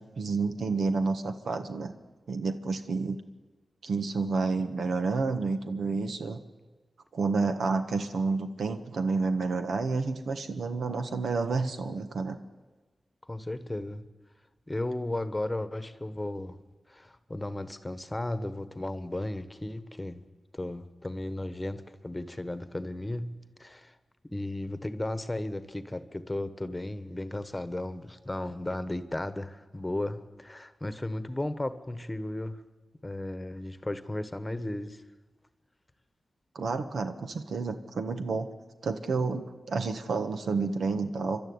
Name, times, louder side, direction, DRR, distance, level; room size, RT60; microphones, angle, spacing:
voice 1, 0.0-1.9 2.3-3.2 3.8-6.4 7.1-12.4 36.5-38.5 38.8-41.4, right 4 dB, 85° right, 8 dB, 1.5 m, -30 dB
voice 2, 13.3-14.0 14.7-16.6 16.9-20.3 20.5-23.9 24.3-32.6 33.0-35.0, left 1 dB, 15° left, 12 dB, 1.2 m, -35 dB
29.0 x 12.5 x 9.6 m, 1.3 s
wide cardioid pair, 90°, 0 cm